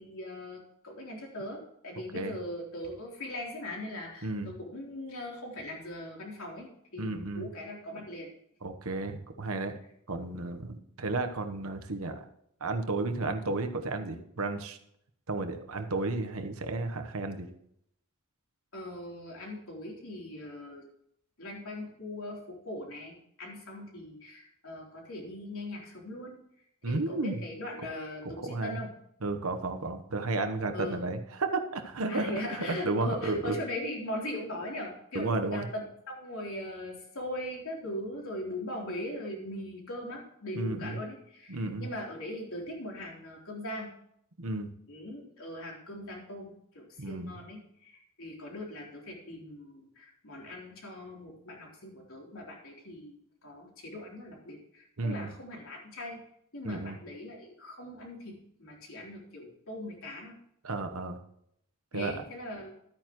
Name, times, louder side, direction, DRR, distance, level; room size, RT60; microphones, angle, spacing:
voice 1, 0.0-8.3 18.7-20.9 21.4-26.4 26.9-28.9 30.7-31.0 32.1-43.9 44.9-53.2 53.4-56.2 56.5-60.4 61.9-62.7, left 1 dB, 65° left, -1 dB, 3.7 m, -40 dB
voice 2, 4.2-4.5 7.0-7.5 8.6-9.7 10.1-12.2 12.6-14.8 15.3-17.5 26.8-27.4 28.2-28.8 29.2-33.6 35.1-35.7 40.5-41.0 41.5-41.9 44.4-44.7 47.0-47.3 55.0-55.3 56.6-57.0 60.6-61.2 61.9-62.1, right 2 dB, 70° right, 6 dB, 1.1 m, -33 dB
13.0 x 9.0 x 3.1 m, 0.73 s
head